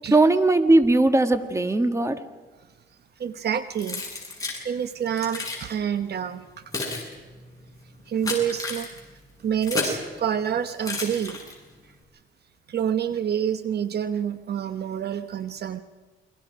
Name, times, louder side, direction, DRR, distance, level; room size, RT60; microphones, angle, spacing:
voice 1, 0.1-2.2, right 2 dB, 15° right, 8 dB, 1.8 m, -19 dB
voice 2, 3.2-4.0 4.6-6.6 8.1-8.9 9.4-11.4 12.7-15.8, right 8 dB, 55° right, 10 dB, 1.0 m, -27 dB
Keys jangling, 3.8-4.6 5.2-5.6 6.4-10.1 10.8-11.7, left 3 dB, 15° left, 7.5 m, -32 dB
29.0 x 23.0 x 5.2 m, 1.4 s
cardioid pair, 90°, 20 cm